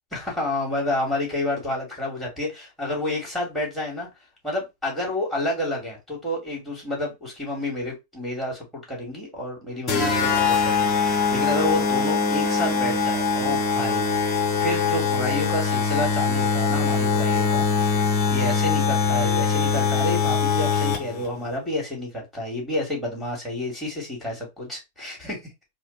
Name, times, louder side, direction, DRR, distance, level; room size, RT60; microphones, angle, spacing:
voice 1, 0.1-4.1 4.4-17.7 17.9-25.4, left 1 dB, 5° left, 2.9 m, -30 dB
sound 1, 9.9-21.3, left 5 dB, 30° left, 1.2 m, -22 dB
4.9 x 2.4 x 4.3 m
figure-of-eight pair, 90°, 0 cm